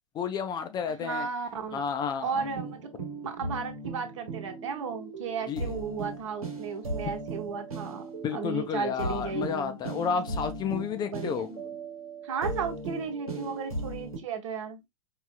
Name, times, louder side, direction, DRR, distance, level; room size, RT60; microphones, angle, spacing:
voice 1, 0.1-1.3 1.7-2.5 5.5-5.6 8.2-11.5, left 7 dB, 25° left, 0.5 m, -31 dB
voice 2, 0.9-1.8 2.2-2.8 3.2-8.0 8.3-9.8 11.0-11.6 12.2-14.9, right 5 dB, 60° right, 1.1 m, -34 dB
sound 1, 2.3-14.2, right 2 dB, 85° right, 1.2 m, -37 dB
4.8 x 2.7 x 2.4 m
figure-of-eight pair, 100°, 18 cm